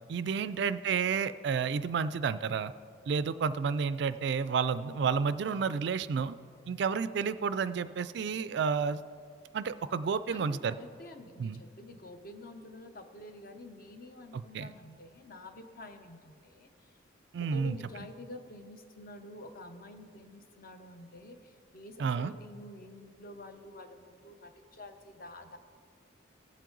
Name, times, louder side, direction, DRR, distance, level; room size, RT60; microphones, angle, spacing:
voice 1, 0.1-2.7 3.1-6.3 6.7-9.0 9.5-10.8 11.4-11.6 14.3-14.7 17.3-17.8 22.0-22.3, right 6 dB, 60° right, 15 dB, 0.3 m, -31 dB
voice 2, 4.8-5.2 10.3-16.9 17.4-25.6, left 1 dB, 45° left, 7 dB, 0.8 m, -49 dB
17.5 x 7.5 x 3.9 m, 2.2 s
head